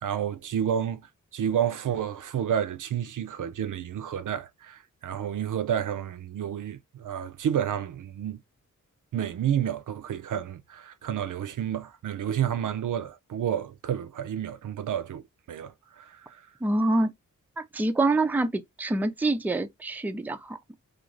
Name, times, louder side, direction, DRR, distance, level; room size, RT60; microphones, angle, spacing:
voice 1, 0.0-1.0 1.3-8.4 9.1-15.2 15.5-16.4, right 9 dB, 70° right, 0.5 m, -30 dB
voice 2, 16.6-17.1 17.6-20.7, right 2 dB, 5° right, 0.4 m, -26 dB
2.5 x 2.4 x 3.0 m
cardioid pair, 45°, 33 cm